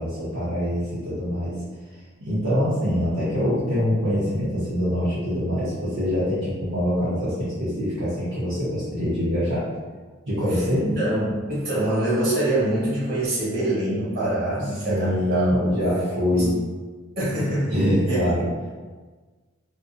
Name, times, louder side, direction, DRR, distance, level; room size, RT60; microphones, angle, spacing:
voice 1, 0.0-1.6 2.2-9.6 10.3-10.8 14.9-16.5 17.7-18.5, equal, 70° right, -12 dB, 0.8 m, -24 dB
voice 2, 10.5-15.7 16.3-16.5 17.2-17.7 18.1-18.2, right 1 dB, 50° right, -8 dB, 1.3 m, -25 dB
2.6 x 2.1 x 2.4 m, 1.3 s
head